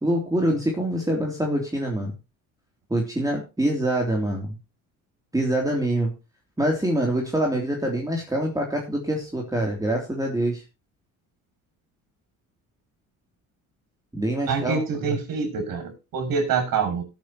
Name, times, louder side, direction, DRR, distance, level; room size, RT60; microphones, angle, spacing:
voice 1, 0.0-2.1 2.9-4.6 5.3-6.1 6.6-10.6 14.1-14.8 15.1-15.2, right 1 dB, 10° right, 1 dB, 3.2 m, -25 dB
voice 2, 14.5-17.0, right 5 dB, 65° right, 5 dB, 6.7 m, -26 dB
18.0 x 9.2 x 3.0 m, 0.28 s
supercardioid pair, 85°, 36 cm